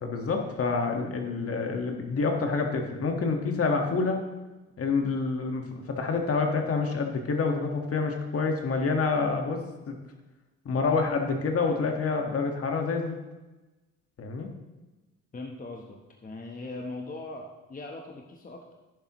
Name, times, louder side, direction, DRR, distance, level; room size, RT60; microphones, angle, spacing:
voice 1, 0.0-4.2 4.8-9.6 9.9-10.0 10.7-13.2 14.2-14.5, left 4 dB, 50° left, 3 dB, 1.7 m, -27 dB
voice 2, 15.3-18.7, left 2 dB, 25° left, 1 dB, 1.1 m, -40 dB
11.0 x 10.0 x 3.1 m, 1.1 s
cardioid pair, 90°, 30 cm